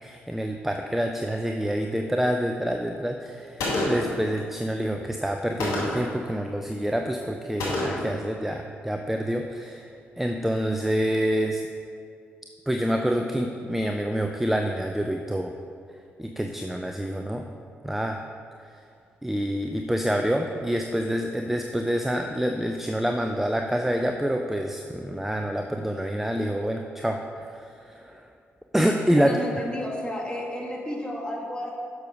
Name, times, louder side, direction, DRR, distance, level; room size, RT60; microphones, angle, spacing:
voice 1, 0.0-9.9 10.2-11.6 12.7-15.5 16.2-17.5 17.8-18.2 19.2-28.3 28.7-29.4, equal, 5° right, 4 dB, 0.7 m, -27 dB
Gunshot gunfire, 3.6-4.2 5.6-6.1 7.6-8.2, left 1 dB, 70° left, 2.4 m, -27 dB
voice 2, 29.2-31.7, left 1 dB, 15° left, -3 dB, 2.6 m, -32 dB
11.0 x 6.9 x 4.7 m, 2.3 s
hypercardioid pair, 40°, 6 cm